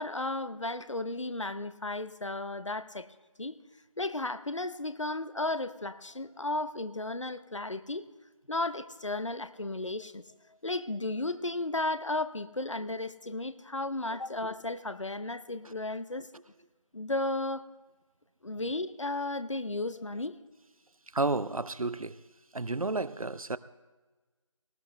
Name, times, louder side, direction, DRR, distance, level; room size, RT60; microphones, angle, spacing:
voice 1, 0.0-3.1 3.4-3.6 4.0-8.0 8.5-10.2 10.6-16.3 16.9-17.7 18.4-20.4, left 2 dB, 60° left, 13 dB, 0.8 m, -34 dB
voice 2, 21.1-22.2 22.5-23.6, right 3 dB, 85° right, 16 dB, 0.7 m, -31 dB
19.0 x 14.0 x 3.3 m, 1.2 s
figure-of-eight pair, 175°, 17 cm